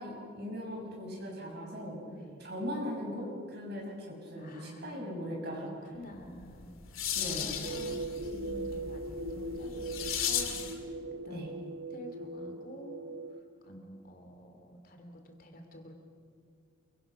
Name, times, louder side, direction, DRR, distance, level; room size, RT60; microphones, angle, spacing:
voice 1, 0.0-2.0 2.4-5.7 7.1-7.6 11.3-11.5, equal, 50° right, -2 dB, 7.7 m, -39 dB
voice 2, 2.0-2.6 4.4-5.2 5.5-11.5 11.9-15.9, equal, 45° left, 4 dB, 2.8 m, -50 dB
sound 1, 6.4-10.8, left 8 dB, 80° left, 2.3 m, -36 dB
sound 2, 7.6-13.4, right 2 dB, 65° right, 1.2 m, -39 dB
29.0 x 24.0 x 6.1 m, 2.2 s
head